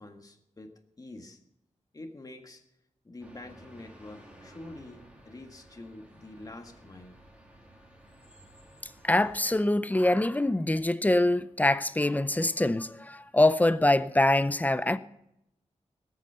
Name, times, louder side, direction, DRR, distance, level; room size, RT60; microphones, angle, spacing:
voice 1, 0.0-1.4 1.9-2.6 3.0-7.2, left 2 dB, 30° left, 1.7 m, -46 dB
sound 1, 3.2-9.6, right 1 dB, 10° right, 3.0 m, -54 dB
voice 2, 9.0-15.0, left 1 dB, 15° left, 0.6 m, -24 dB
19.0 x 8.5 x 6.8 m
wide cardioid pair, 125°, 12 cm